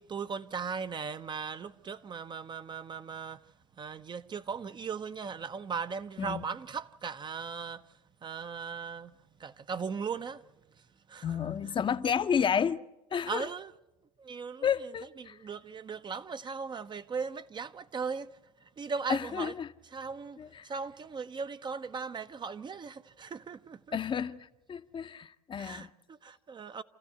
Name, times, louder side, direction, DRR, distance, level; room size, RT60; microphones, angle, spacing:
voice 1, 0.0-3.4 3.8-7.8 8.2-9.1 9.4-10.4 11.1-11.4 13.3-13.7 14.2-14.9 15.2-18.3 18.8-19.5 19.9-20.4 20.6-24.0 25.6-26.8, right 5 dB, 25° right, 0.7 m, -38 dB
voice 2, 11.2-12.8 13.1-13.5 14.6-15.4 19.1-19.7 20.4-20.7 23.9-25.9, left 7 dB, 25° left, 0.7 m, -31 dB
28.5 x 14.5 x 7.9 m
hypercardioid pair, 80°, 20 cm